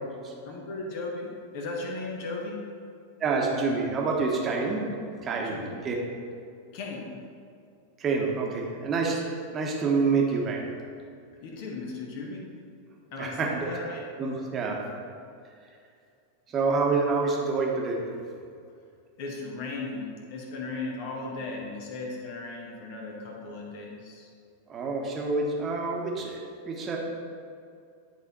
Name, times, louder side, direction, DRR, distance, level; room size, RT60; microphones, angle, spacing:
voice 1, 0.4-2.6 5.4-5.8 6.7-7.2 11.4-12.5 13.1-14.0 19.2-24.3, left 3 dB, 45° left, -1 dB, 1.4 m, -36 dB
voice 2, 3.2-4.9 5.2-6.0 8.0-10.7 13.2-13.7 14.2-14.9 16.5-18.1 24.7-26.4 26.7-27.0, right 4 dB, 25° right, -1 dB, 1.3 m, -27 dB
10.0 x 4.1 x 4.3 m, 2.4 s
figure-of-eight pair, 90°, 0 cm